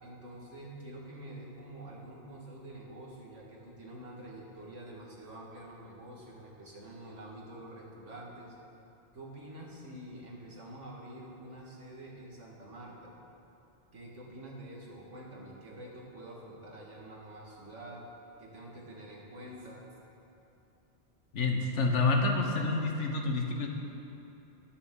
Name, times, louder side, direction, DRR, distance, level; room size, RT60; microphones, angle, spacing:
voice 1, 0.0-8.6 9.1-13.1 13.9-18.1 18.4-19.9, right 1 dB, 85° right, -3 dB, 2.2 m, -47 dB
voice 2, 21.3-23.7, left 3 dB, 75° left, 2 dB, 1.4 m, -28 dB
20.5 x 7.0 x 3.8 m, 2.9 s
omnidirectional pair, 1.2 m